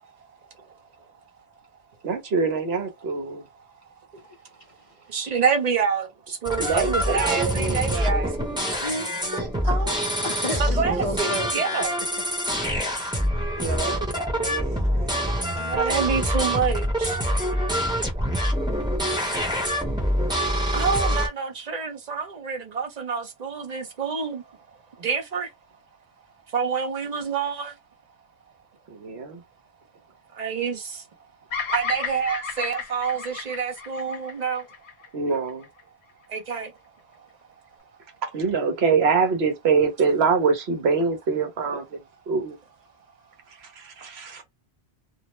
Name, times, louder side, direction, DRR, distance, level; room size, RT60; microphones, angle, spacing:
voice 1, 2.0-3.5 6.5-8.5 13.6-15.7 28.9-29.4 35.1-35.7 38.2-42.6 43.5-44.4, right 5 dB, 70° right, 1.1 m, -25 dB
voice 2, 4.3-4.9 5.2-5.4 7.7-8.0 8.8-11.8 12.1-12.2, equal, 50° left, 0.4 m, -33 dB
voice 3, 5.1-6.8 7.1-8.6 10.6-11.9 15.6-17.2 20.7-24.4 25.0-25.5 26.5-27.7 30.3-31.0 31.7-34.7 36.3-36.7, right 6 dB, 45° right, 0.7 m, -27 dB
sound 1, 6.5-21.3, equal, 5° right, 0.8 m, -25 dB
Bird vocalization bird call bird song, 31.5-35.8, left 6 dB, 70° left, 0.9 m, -33 dB
2.6 x 2.0 x 3.0 m
omnidirectional pair, 1.1 m